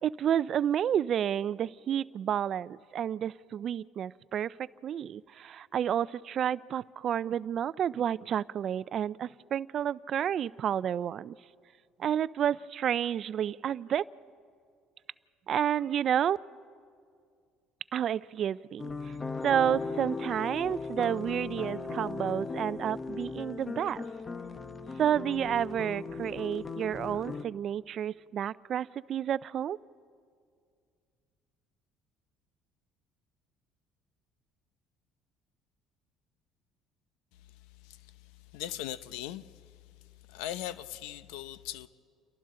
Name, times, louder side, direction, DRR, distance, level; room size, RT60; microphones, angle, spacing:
voice 1, 0.0-11.3 12.0-14.0 15.5-16.4 17.9-19.1 19.4-24.1 25.0-29.8, right 9 dB, 55° right, 0.4 m, -30 dB
sound 1, 18.8-27.4, left 4 dB, 30° left, 0.9 m, -38 dB
voice 2, 37.8-39.8 40.3-41.9, left 13 dB, 80° left, 0.7 m, -40 dB
29.5 x 23.0 x 3.8 m
supercardioid pair, 75°, 0 cm